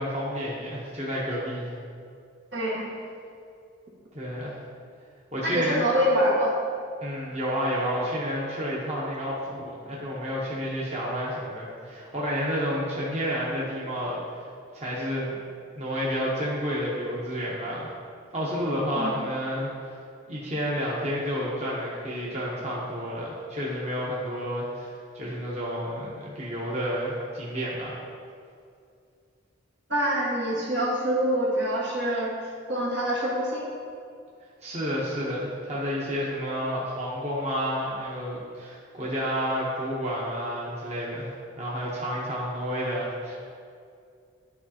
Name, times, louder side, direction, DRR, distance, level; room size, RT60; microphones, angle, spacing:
voice 1, 0.0-1.7 4.1-4.6 5.3-5.9 7.0-9.3 9.8-14.2 14.7-15.4 15.7-17.9 18.3-19.9 20.3-28.0 34.6-41.3 41.6-43.4, equal, 35° right, -6 dB, 1.0 m, -30 dB
voice 2, 2.5-2.9 5.4-6.5 18.9-19.2 29.9-32.3 32.7-33.7, equal, 75° right, -5 dB, 1.7 m, -25 dB
11.0 x 4.8 x 2.9 m, 2.3 s
head